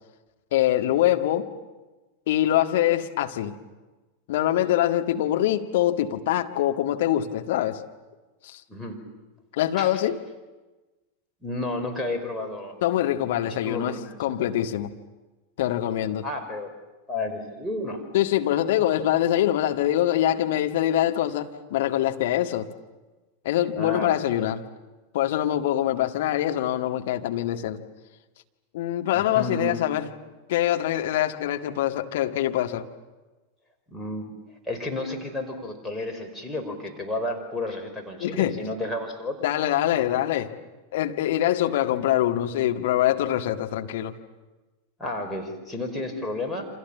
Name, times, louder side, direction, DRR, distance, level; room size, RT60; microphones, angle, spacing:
voice 1, 0.5-1.5 2.3-3.6 4.3-7.8 8.4-8.6 9.6-10.2 12.8-14.9 15.6-16.3 18.1-22.7 23.5-24.6 25.1-27.8 28.7-30.1 30.5-32.9 38.2-38.6 39.4-40.5 40.9-44.1, left 12 dB, 55° left, 5 dB, 1.7 m, -24 dB
voice 2, 11.4-12.7 13.4-14.2 16.2-16.7 17.1-18.0 23.7-24.5 29.1-29.8 33.9-34.3 34.7-39.5 45.0-46.7, left 2 dB, 5° left, 1 dB, 5.3 m, -32 dB
28.5 x 26.5 x 7.3 m, 1.2 s
figure-of-eight pair, 90°, 0 cm